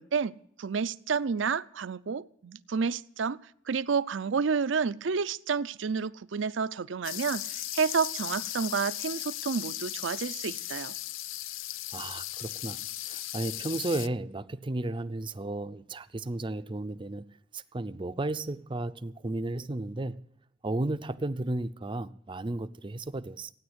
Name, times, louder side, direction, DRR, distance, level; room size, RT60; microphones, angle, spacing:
voice 1, 0.0-10.9, right 5 dB, 70° right, 0.5 m, -30 dB
sound 1, 7.0-14.1, left 14 dB, 85° left, 0.5 m, -37 dB
voice 2, 11.9-20.2 20.6-23.5, right 2 dB, 25° right, 0.5 m, -34 dB
16.0 x 9.7 x 8.0 m
head